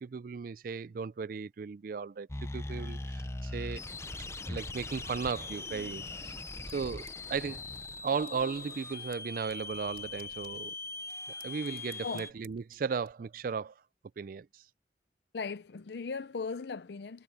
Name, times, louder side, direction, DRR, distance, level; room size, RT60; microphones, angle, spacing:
voice 1, 0.0-2.3 2.5-3.8 4.5-6.4 6.7-7.6 8.0-10.7 11.4-13.7 14.2-14.6, right 5 dB, 50° right, 0.4 m, -36 dB
sound 1, 2.3-12.3, left 2 dB, 15° left, 0.6 m, -41 dB
sound 2, 7.0-13.1, right 8 dB, 30° right, 2.5 m, -63 dB
voice 2, 15.3-17.2, left 5 dB, 65° left, 0.5 m, -38 dB
head